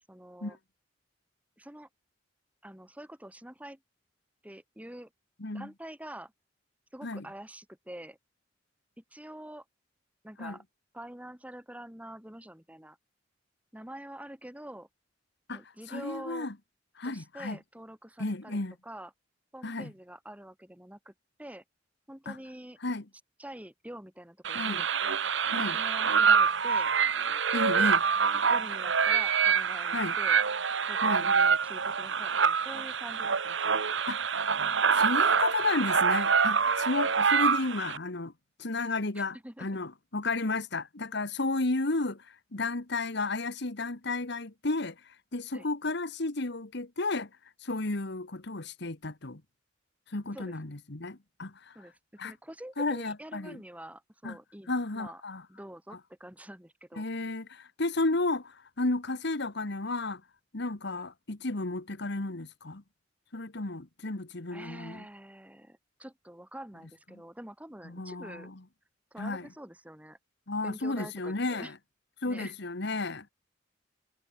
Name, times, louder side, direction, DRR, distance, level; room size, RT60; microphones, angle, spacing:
voice 1, 0.1-0.6 1.6-1.9 2.6-3.8 4.4-5.1 5.5-6.3 6.9-8.2 9.0-9.6 10.2-10.6 10.9-13.0 13.7-14.9 15.5-16.5 17.0-19.1 19.5-21.1 21.4-21.6 22.1-22.8 23.4-24.9 25.7-26.9 27.8-27.9 28.5-30.4 30.9-33.8 39.2-39.7 45.5-45.7 50.3-50.6 51.8-55.2 55.5-57.0 64.5-68.5 69.1-70.2 70.6-71.7 72.3-72.5, right 1 dB, 10° right, 3.6 m, -46 dB
voice 2, 15.9-16.5 17.0-17.6 18.2-18.7 19.6-19.9 22.2-22.4 22.8-23.0 24.5-24.8 25.5-25.8 27.5-28.0 29.9-30.1 31.0-31.3 34.1-34.4 34.9-38.3 38.6-47.3 47.6-49.4 50.1-51.7 52.2-52.3 52.8-53.6 54.2-54.4 54.7-55.4 57.0-60.2 60.5-62.8 63.3-65.0 67.8-68.5 69.2-69.5 70.5-71.7 72.2-73.3, left 2 dB, 65° left, 1.6 m, -33 dB
sound 1, 24.4-38.0, right 6 dB, 75° right, 1.2 m, -26 dB
head